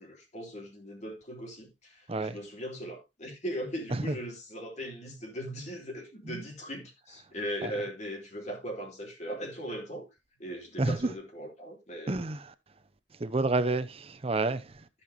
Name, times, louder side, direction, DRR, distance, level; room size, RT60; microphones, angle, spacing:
voice 1, 0.0-10.1 10.4-12.2, equal, 40° left, 3.3 m, -39 dB
voice 2, 10.8-11.1 12.1-12.5 13.2-14.8, right 2 dB, 30° right, 0.7 m, -29 dB
14.0 x 5.8 x 3.0 m
head